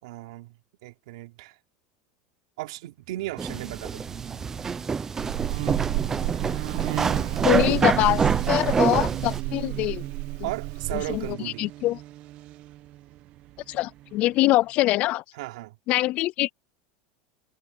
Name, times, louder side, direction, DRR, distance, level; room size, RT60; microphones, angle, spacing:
voice 1, 0.0-1.5 2.6-4.1 10.4-11.7 15.3-15.8, right 18 dB, 80° right, 3.4 m, -36 dB
Motorcycle, 3.0-14.7, right 15 dB, 40° right, 1.5 m, -40 dB
sound 1, 3.4-9.4, right 5 dB, 15° right, 0.8 m, -26 dB
Buzz, 5.2-11.3, right 23 dB, 60° right, 1.1 m, -31 dB
voice 2, 7.4-10.0 10.9-12.0 13.7-15.2 15.9-16.5, left 17 dB, 40° left, 0.5 m, -24 dB
supercardioid pair, 165°, 3 cm